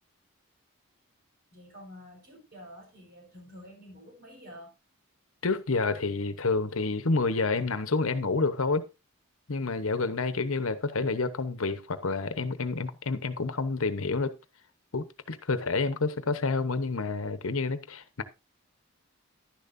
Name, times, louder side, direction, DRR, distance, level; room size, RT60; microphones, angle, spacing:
voice 1, 1.5-4.7, equal, 45° right, 4.5 m, -49 dB
voice 2, 5.4-8.8 9.5-14.3 14.9-18.2, left 3 dB, 75° left, 1.0 m, -29 dB
11.5 x 10.5 x 2.6 m
head